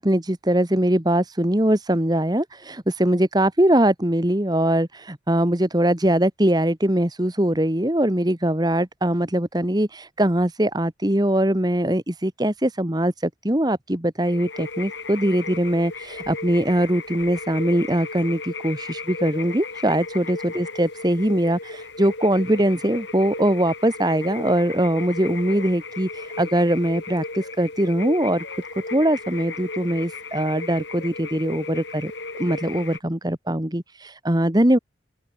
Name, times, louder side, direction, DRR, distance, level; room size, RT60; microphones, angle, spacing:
voice 1, 0.0-34.8, right 1 dB, 20° right, 1.6 m, -22 dB
sound 1, 14.2-33.0, left 3 dB, 75° left, 5.1 m, -35 dB
open air
head